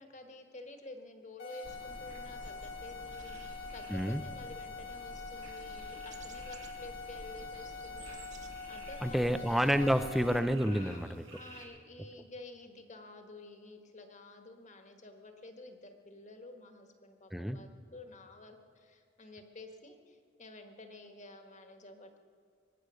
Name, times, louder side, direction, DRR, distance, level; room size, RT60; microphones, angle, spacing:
voice 1, 0.0-9.2 10.6-22.2, left 2 dB, 40° left, 5 dB, 1.5 m, -51 dB
sound 1, 1.4-10.4, left 5 dB, 55° left, 1.6 m, -45 dB
sound 2, 1.5-11.7, right 4 dB, 80° right, 3.6 m, -58 dB
sound 3, 1.6-10.6, right 2 dB, 40° right, 0.8 m, -50 dB
voice 2, 3.9-4.2 9.0-11.2 17.3-17.6, equal, ahead, 10 dB, 0.5 m, -29 dB
23.0 x 9.8 x 6.4 m, 2.1 s
head